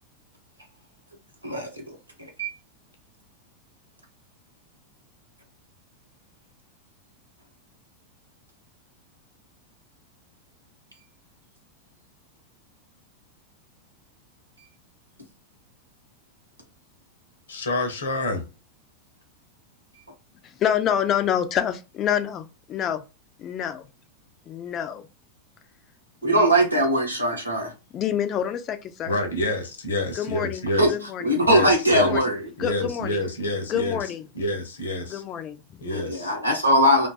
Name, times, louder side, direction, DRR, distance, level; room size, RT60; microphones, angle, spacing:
voice 1, 17.5-18.5 29.1-30.9 31.4-32.2 32.6-34.1 34.3-35.2 35.8-36.3, left 1 dB, 65° left, 0.7 m, -28 dB
voice 2, 20.6-23.0 23.4-23.9 24.5-25.0 26.2-26.5 26.8-26.9 27.9-29.2 30.2-31.3 31.9-32.2 32.6-33.2 33.7-34.2 35.1-35.6, left 9 dB, 30° left, 0.4 m, -27 dB
voice 3, 26.2-27.7 30.8-30.9 31.2-32.4 35.9-37.1, equal, 85° right, 0.8 m, -20 dB
2.5 x 2.3 x 2.3 m
figure-of-eight pair, 90°, 0 cm